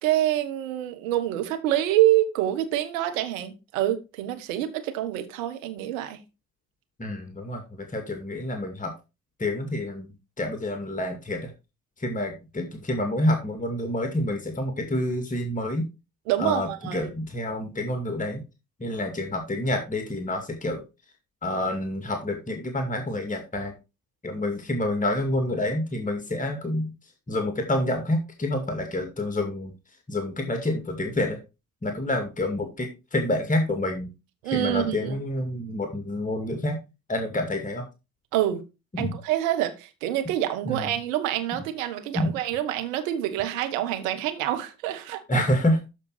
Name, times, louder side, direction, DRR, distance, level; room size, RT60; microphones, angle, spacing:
voice 1, 0.0-6.2 16.3-17.1 34.4-35.2 38.3-38.6 39.0-45.4, right 13 dB, 70° right, 1.4 m, -26 dB
voice 2, 7.0-8.9 9.4-10.1 10.4-11.5 12.0-15.9 16.4-18.4 18.8-20.8 21.4-23.7 24.2-26.9 27.3-29.7 30.1-31.4 31.8-34.1 34.5-36.8 37.1-37.8 38.9-39.1 40.7-40.9 42.1-42.3 45.3-45.8, left 1 dB, 20° left, 2.2 m, -28 dB
13.0 x 4.5 x 4.1 m
figure-of-eight pair, 45°, 41 cm